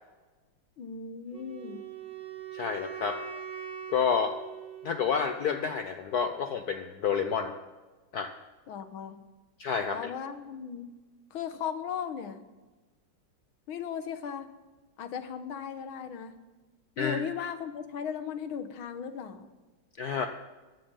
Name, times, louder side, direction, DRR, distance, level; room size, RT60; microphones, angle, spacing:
voice 1, 0.8-1.8 8.7-9.2 9.9-10.9 11.3-12.4 13.7-14.5 15.0-16.4 17.0-19.5, left 7 dB, 80° left, 10 dB, 1.9 m, -37 dB
Wind instrument woodwind instrument, 1.3-5.4, right 8 dB, 60° right, 3.1 m, -42 dB
voice 2, 2.5-3.2 3.9-4.3 4.8-7.5 8.1-8.3 9.6-10.1 17.0-17.2 20.0-20.3, left 6 dB, 60° left, 7 dB, 1.1 m, -29 dB
14.5 x 7.6 x 8.9 m, 1.2 s
omnidirectional pair, 2.2 m